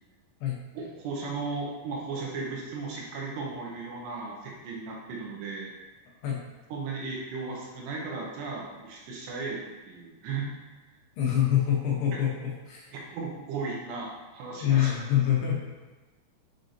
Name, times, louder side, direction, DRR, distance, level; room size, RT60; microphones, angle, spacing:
voice 1, 0.7-5.7 6.7-9.6 9.9-10.5 12.1-12.2 12.9-14.9, right 4 dB, 85° right, -2 dB, 2.8 m, -36 dB
voice 2, 11.2-12.9 14.6-15.7, left 10 dB, 80° left, -3 dB, 2.5 m, -26 dB
7.4 x 2.7 x 2.6 m, 1.2 s
omnidirectional pair, 5.1 m